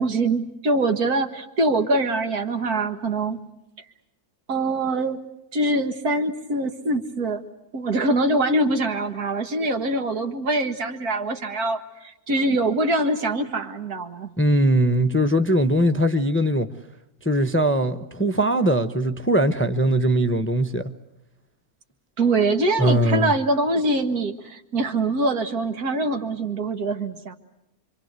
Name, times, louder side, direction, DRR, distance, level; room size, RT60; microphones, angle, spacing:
voice 1, 0.0-3.4 4.5-5.2 5.5-7.4 7.7-14.3 22.2-27.3, right 2 dB, 80° right, 6 dB, 2.3 m, -24 dB
voice 2, 14.4-16.7 17.2-20.9 22.8-23.3, right 1 dB, 10° left, 9 dB, 0.7 m, -20 dB
26.5 x 25.5 x 8.2 m, 0.88 s
omnidirectional pair, 1.6 m